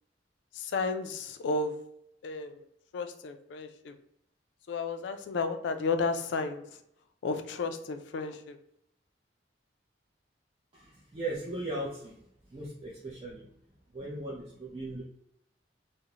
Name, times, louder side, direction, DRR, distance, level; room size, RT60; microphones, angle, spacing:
voice 1, 0.5-1.7 2.2-2.7 2.9-3.9 4.7-6.6 7.2-8.6, left 4 dB, 80° left, 8 dB, 0.3 m, -32 dB
voice 2, 10.7-12.1 12.5-13.5 13.9-15.0, right 2 dB, 30° right, -6 dB, 0.5 m, -38 dB
2.4 x 2.0 x 2.9 m, 0.75 s
head